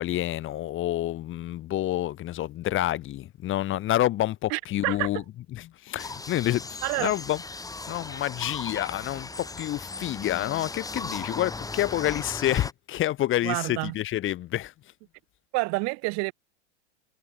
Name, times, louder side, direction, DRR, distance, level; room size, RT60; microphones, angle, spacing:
voice 1, 0.0-5.2 5.5-7.4 7.9-14.7, left 14 dB, 35° left, 5.9 m, -28 dB
voice 2, 4.5-5.1 6.8-7.1 13.4-13.9 15.5-16.3, right 31 dB, 50° right, 4.4 m, -28 dB
sound 1, 6.0-12.7, left 3 dB, 10° left, 7.8 m, -37 dB
hypercardioid pair, 110°, 33 cm